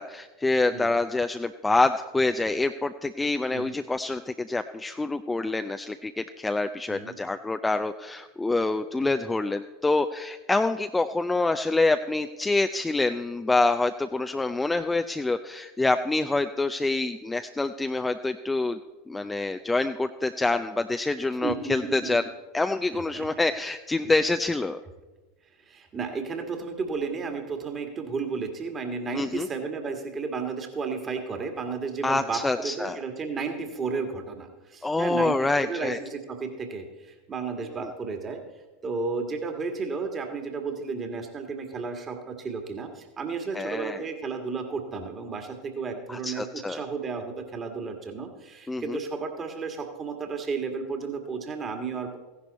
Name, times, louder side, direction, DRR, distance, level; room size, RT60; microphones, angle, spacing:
voice 1, 0.0-18.8 19.1-22.2 22.5-24.8 29.1-29.5 32.0-33.0 34.8-36.0 37.6-37.7 43.5-44.0 46.1-46.8 48.7-49.0, left 2 dB, 10° left, 8 dB, 0.4 m, -26 dB
voice 2, 21.4-22.2 22.9-23.3 25.7-38.4 38.8-52.2, right 4 dB, 30° right, 5 dB, 1.9 m, -33 dB
15.0 x 10.5 x 4.1 m, 1.2 s
hypercardioid pair, 90°, 0 cm